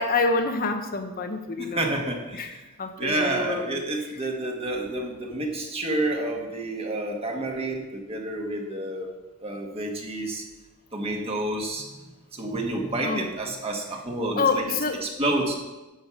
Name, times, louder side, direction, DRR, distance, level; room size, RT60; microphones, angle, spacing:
voice 1, 0.0-2.0 2.3-2.5 2.8-3.8 13.0-13.3 14.4-15.0, left 4 dB, 40° left, 6 dB, 0.8 m, -27 dB
voice 2, 1.6-2.6 3.0-9.1 9.4-10.4 10.9-11.9 12.3-14.6 15.0-15.6, right 1 dB, 25° right, 1 dB, 1.6 m, -29 dB
10.5 x 5.5 x 7.3 m, 1.1 s
head